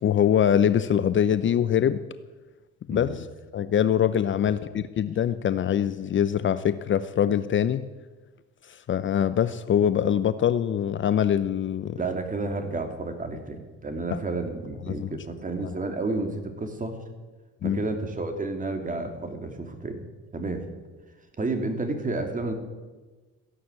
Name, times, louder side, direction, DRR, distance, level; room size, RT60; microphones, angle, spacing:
voice 1, 0.0-2.0 2.9-3.3 3.5-7.9 8.7-12.0 14.1-14.2 15.0-15.1 17.6-17.8, left 9 dB, 40° left, 13 dB, 0.7 m, -23 dB
voice 2, 12.0-17.0 17.6-20.0 20.3-20.7 21.4-22.5, right 3 dB, 25° right, 6 dB, 3.0 m, -31 dB
15.0 x 11.0 x 8.3 m, 1.3 s
supercardioid pair, 85°, 31 cm